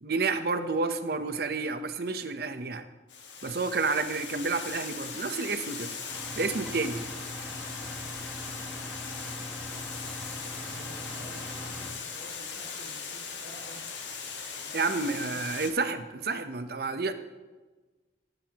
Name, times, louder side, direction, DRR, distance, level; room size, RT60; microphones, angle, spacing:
voice 1, 0.0-2.8 3.4-5.9 6.4-7.1 14.4-14.5 14.7-17.1, right 4 dB, 55° right, 9 dB, 0.8 m, -30 dB
Water, 3.1-15.7, left 5 dB, 90° left, 1.5 m, -39 dB
sound 1, 6.1-11.9, equal, 5° left, 1.6 m, -41 dB
voice 2, 10.0-14.0 14.5-15.4, equal, 70° left, -6 dB, 3.1 m, -51 dB
18.0 x 9.2 x 2.9 m, 1.3 s
head